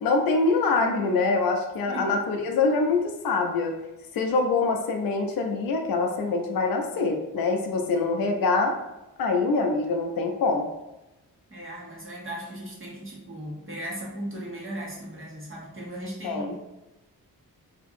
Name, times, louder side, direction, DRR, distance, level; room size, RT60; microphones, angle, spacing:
voice 1, 0.0-3.7 4.1-8.8 9.2-10.7 16.2-16.5, left 3 dB, 75° left, 3 dB, 0.5 m, -24 dB
voice 2, 1.9-2.4 11.5-16.6, right 1 dB, 35° right, -4 dB, 1.0 m, -37 dB
2.9 x 2.5 x 2.5 m, 1.0 s
wide cardioid pair, 90°, 37 cm